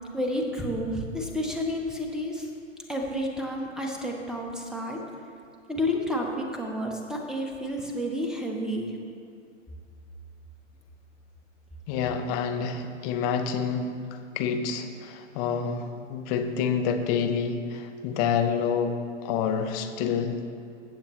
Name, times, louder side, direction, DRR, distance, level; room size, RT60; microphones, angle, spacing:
voice 1, 0.1-2.5 2.9-5.0 5.7-8.9, equal, ahead, 1 dB, 1.0 m, -30 dB
voice 2, 11.9-19.0 19.2-20.3, left 6 dB, 30° left, 6 dB, 0.8 m, -28 dB
16.5 x 7.4 x 3.2 m, 2.3 s
figure-of-eight pair, 115°, 38 cm